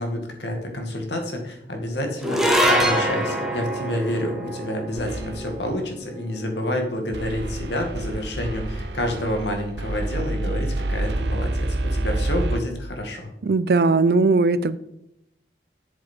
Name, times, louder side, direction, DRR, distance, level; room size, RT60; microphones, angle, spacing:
voice 1, 0.0-13.3, left 1 dB, 80° left, 3 dB, 2.0 m, -28 dB
sound 1, 2.2-8.7, equal, ahead, 1.2 m, -26 dB
sound 2, 5.0-5.7 7.1-12.6, right 1 dB, 75° right, 0.9 m, -28 dB
voice 2, 13.4-14.8, right 3 dB, 60° right, 16 dB, 0.5 m, -19 dB
10.5 x 7.6 x 4.5 m, 0.81 s
head